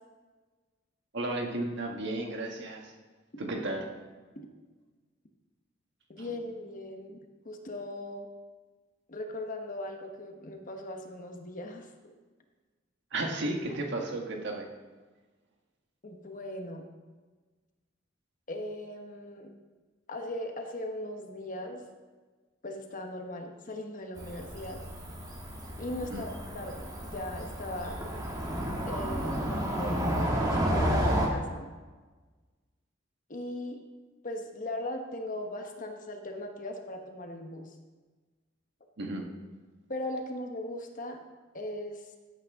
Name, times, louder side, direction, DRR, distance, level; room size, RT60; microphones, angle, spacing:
voice 1, 1.1-2.9 3.4-3.9 6.2-6.3 13.1-14.7 26.0-26.2 39.0-39.3, right 2 dB, 60° right, 2 dB, 1.5 m, -33 dB
voice 2, 6.1-8.3 9.1-12.1 16.0-16.9 18.5-19.5 20.1-21.8 22.6-24.8 25.8-28.1 28.9-31.7 33.3-33.8 34.2-37.7 39.9-41.2 41.5-42.0, left 1 dB, 45° left, 4 dB, 1.2 m, -39 dB
Cricket / Motor vehicle (road), 24.2-31.3, equal, 20° right, 1.6 m, -31 dB
14.5 x 8.9 x 3.6 m, 1.3 s
head